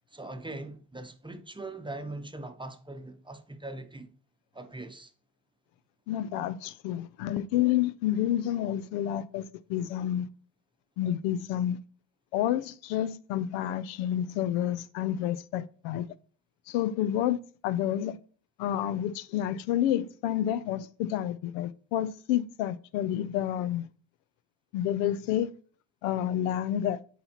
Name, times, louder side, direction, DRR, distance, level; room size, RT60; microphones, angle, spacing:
voice 1, 0.1-4.1 4.5-5.1, right 2 dB, 10° right, 0.8 m, -41 dB
voice 2, 6.1-10.3 11.0-11.8 12.3-16.1 16.7-18.2 18.6-23.9 24.7-25.5 26.0-27.0, left 11 dB, 80° left, 0.6 m, -29 dB
8.5 x 4.2 x 2.9 m
hypercardioid pair, 65°, 48 cm